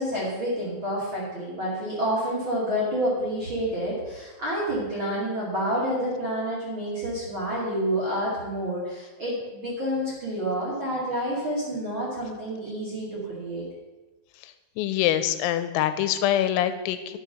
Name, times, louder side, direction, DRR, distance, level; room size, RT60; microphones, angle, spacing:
voice 1, 0.0-13.6, equal, 35° right, -7 dB, 2.4 m, -28 dB
voice 2, 14.8-17.2, left 11 dB, 90° left, 11 dB, 3.4 m, -24 dB
10.0 x 7.0 x 5.9 m, 1.1 s
omnidirectional pair, 5.9 m